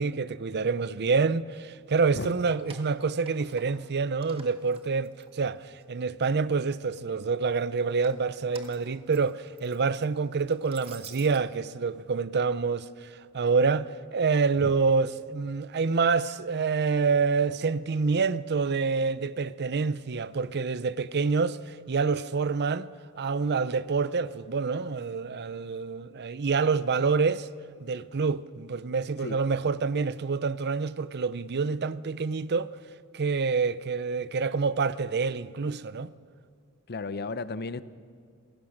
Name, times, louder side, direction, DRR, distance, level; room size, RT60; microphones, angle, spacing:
voice 1, 0.0-22.9 23.2-27.5 27.8-32.7 33.1-36.1, right 4 dB, 50° right, 0.6 m, -27 dB
Keys jangling, 2.0-3.9 4.2-5.8 6.3-7.0 7.8-11.4, right 5 dB, 25° right, 1.7 m, -51 dB
voice 2, 36.9-37.8, left 3 dB, 50° left, 0.7 m, -34 dB
27.5 x 16.5 x 6.5 m
head